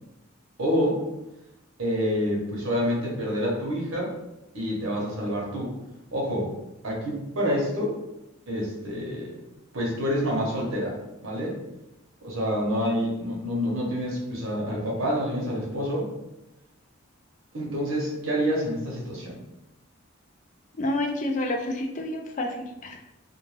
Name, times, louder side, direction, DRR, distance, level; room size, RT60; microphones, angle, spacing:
voice 1, 0.6-1.0 1.8-4.1 4.5-5.7 6.1-6.5 6.8-7.9 8.5-9.4 9.7-10.9 11.2-11.6 12.2-16.1 17.5-19.4, equal, 70° right, -3 dB, 0.9 m, -27 dB
voice 2, 20.8-23.0, left 1 dB, 35° left, 2 dB, 0.3 m, -29 dB
2.5 x 2.3 x 3.1 m, 0.93 s
head